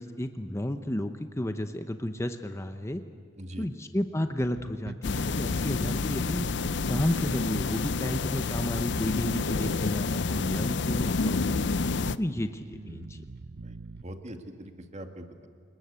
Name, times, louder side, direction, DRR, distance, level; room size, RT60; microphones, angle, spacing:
voice 1, 0.0-3.0 3.6-6.6 6.9-11.5 12.2-13.2, left 1 dB, 15° left, 8 dB, 0.8 m, -32 dB
voice 2, 3.3-3.7 5.6-5.7 13.6-15.5, right 1 dB, 40° right, 5 dB, 2.1 m, -43 dB
Bass guitar, 4.4-14.0, right 3 dB, 60° right, 0.7 m, -43 dB
sound 1, 5.0-12.2, left 4 dB, 65° left, 0.6 m, -29 dB
29.0 x 20.0 x 8.3 m, 2.2 s
head